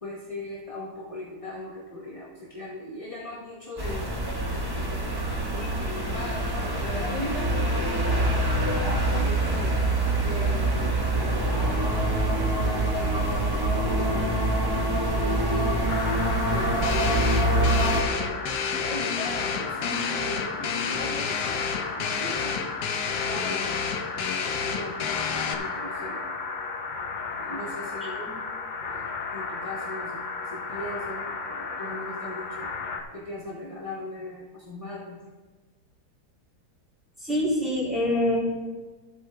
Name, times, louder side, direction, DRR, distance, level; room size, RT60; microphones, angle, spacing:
voice 1, 0.0-4.1 4.5-9.8 10.2-11.6 12.2-16.0 16.5-22.6 23.2-23.9 24.2-26.3 27.4-28.3 28.9-32.8 33.1-35.2, left 1 dB, 25° left, -4 dB, 0.8 m, -39 dB
sound 1, 3.8-18.0, right 1 dB, 20° right, 0.7 m, -25 dB
sound 2, 15.9-33.0, left 4 dB, 55° left, 0.5 m, -34 dB
sound 3, 16.8-25.5, left 6 dB, 70° left, 1.3 m, -30 dB
voice 2, 37.2-38.4, left 1 dB, ahead, -8 dB, 3.2 m, -26 dB
12.5 x 8.1 x 3.3 m, 1.2 s
omnidirectional pair, 1.9 m